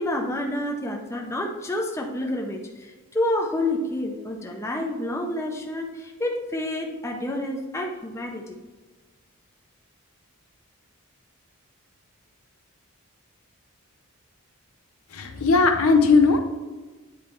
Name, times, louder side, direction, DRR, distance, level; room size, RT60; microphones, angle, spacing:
voice 1, 0.0-8.6, left 1 dB, 10° left, 1 dB, 0.6 m, -29 dB
voice 2, 15.1-16.4, left 4 dB, 70° left, 5 dB, 0.8 m, -18 dB
9.2 x 3.2 x 4.4 m, 1.3 s
head